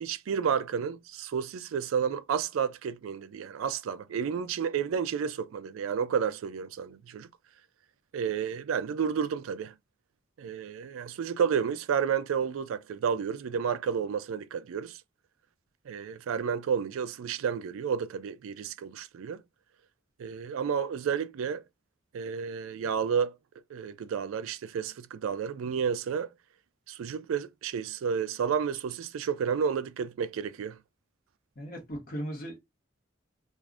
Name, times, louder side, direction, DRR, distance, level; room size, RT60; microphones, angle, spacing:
voice 1, 0.0-7.3 8.1-9.7 10.4-15.0 15.9-19.4 20.2-21.6 22.1-23.3 23.7-26.3 26.9-30.8, right 7 dB, 85° right, 0.3 m, -31 dB
voice 2, 31.5-32.7, equal, 45° left, 1.3 m, -37 dB
3.3 x 2.5 x 2.4 m
head